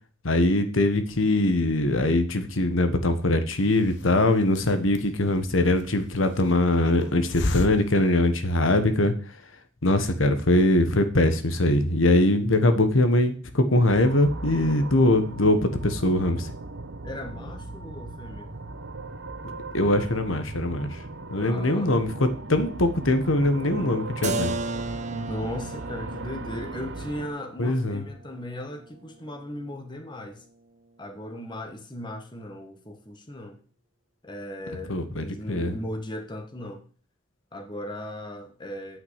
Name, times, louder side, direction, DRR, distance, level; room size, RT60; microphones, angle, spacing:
voice 1, 0.2-9.1 9.8-16.5 19.7-20.9 21.3-24.5 27.6-28.0 34.9-35.7, left 1 dB, 85° left, 1.4 m, -22 dB
Hiss, 3.5-9.0, left 2 dB, 65° left, 1.0 m, -36 dB
sound 1, 13.9-27.3, right 2 dB, 65° right, 0.9 m, -38 dB
voice 2, 17.0-18.5 21.3-22.3 25.1-30.4 31.0-33.6 34.2-36.8 37.5-39.0, left 1 dB, 25° left, 1.5 m, -37 dB
Keyboard (musical), 24.2-29.8, right 3 dB, 40° right, 0.7 m, -36 dB
9.0 x 5.9 x 8.1 m
head